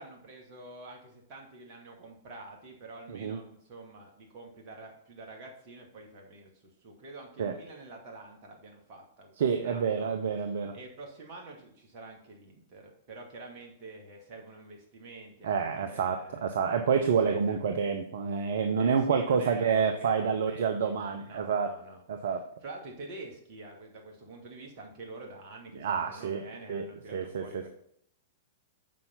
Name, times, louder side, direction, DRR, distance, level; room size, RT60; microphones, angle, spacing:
voice 1, 0.0-9.3 9.6-10.1 10.7-17.8 18.8-22.0 22.6-27.7, right 2 dB, 40° right, 0 dB, 2.5 m, -47 dB
voice 2, 9.4-10.8 15.4-21.7 22.1-22.5 25.8-26.4 26.7-26.9 27.1-27.7, right 6 dB, 60° right, 7 dB, 0.7 m, -28 dB
7.4 x 5.6 x 5.7 m, 0.69 s
figure-of-eight pair, 105°, 0 cm